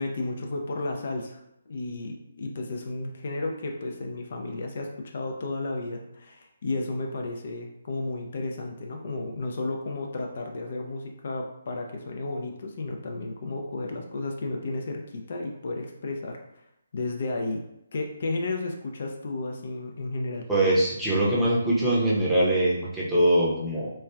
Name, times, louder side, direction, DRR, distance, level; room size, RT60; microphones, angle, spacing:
voice 1, 0.0-16.6 16.9-17.6 17.9-20.5, left 2 dB, 55° left, 2 dB, 0.4 m, -33 dB
voice 2, 20.5-23.9, right 1 dB, 5° right, -8 dB, 0.7 m, -22 dB
3.0 x 2.3 x 2.2 m, 0.81 s
figure-of-eight pair, 145°, 0 cm